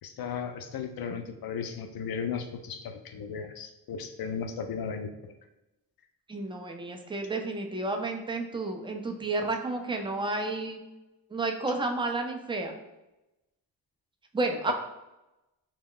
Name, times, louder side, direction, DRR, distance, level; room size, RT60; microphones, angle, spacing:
voice 1, 0.0-5.1, left 6 dB, 55° left, 6 dB, 0.5 m, -35 dB
voice 2, 6.3-10.8 11.3-12.7 14.3-14.7, right 2 dB, 10° right, 3 dB, 0.4 m, -31 dB
2.3 x 2.1 x 3.6 m, 0.97 s
supercardioid pair, 50°, 44 cm